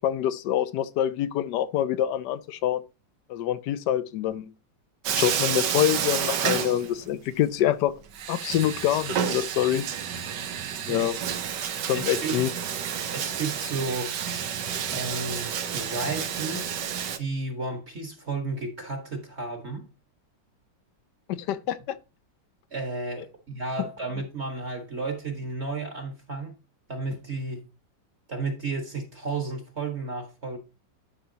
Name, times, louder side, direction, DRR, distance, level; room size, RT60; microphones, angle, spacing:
voice 1, 0.0-2.8 3.3-4.5 5.1-7.9 8.3-9.9 10.9-11.2 11.9-12.5 21.3-22.0, left 12 dB, 75° left, 1.1 m, -26 dB
Bathtub (filling or washing), 5.0-7.3 7.6-7.7 8.1-17.2, right 8 dB, 70° right, 1.4 m, -30 dB
voice 2, 11.9-12.4 13.1-14.2 14.9-16.7 17.1-19.9 22.7-26.5 26.9-27.6 28.3-30.6, right 3 dB, 40° right, 1.6 m, -32 dB
11.5 x 5.7 x 2.8 m
omnidirectional pair, 2.0 m